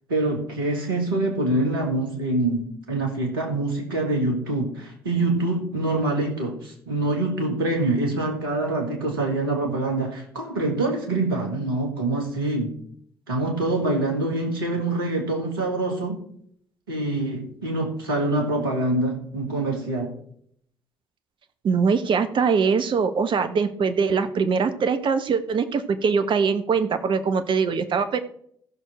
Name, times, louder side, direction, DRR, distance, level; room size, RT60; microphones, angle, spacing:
voice 1, 0.1-12.7 13.3-16.2 16.9-20.1, right 2 dB, 80° right, 0 dB, 2.0 m, -25 dB
voice 2, 21.6-28.2, right 5 dB, 45° right, 9 dB, 1.1 m, -22 dB
14.0 x 6.4 x 4.3 m, 0.65 s
figure-of-eight pair, 45°, 12 cm